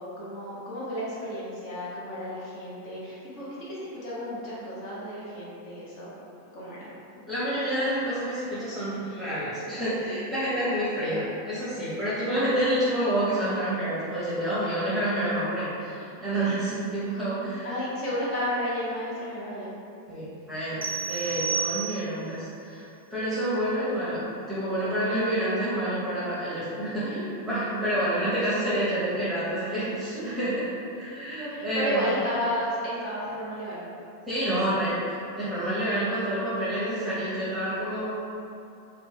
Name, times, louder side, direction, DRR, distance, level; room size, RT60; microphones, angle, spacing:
voice 1, 0.0-6.1 6.5-6.9 16.7-16.9 17.6-19.7 28.0-28.2 31.5-33.8, equal, 45° left, -8 dB, 0.8 m, -32 dB
voice 2, 7.3-17.8 20.1-24.2 24.5-30.7 30.9-32.1 34.3-38.1, right 1 dB, 5° right, -13 dB, 0.8 m, -28 dB
sound 1, 20.8-22.3, right 6 dB, 75° right, 0.3 m, -31 dB
2.5 x 2.1 x 3.3 m, 2.7 s
figure-of-eight pair, 90°, 0 cm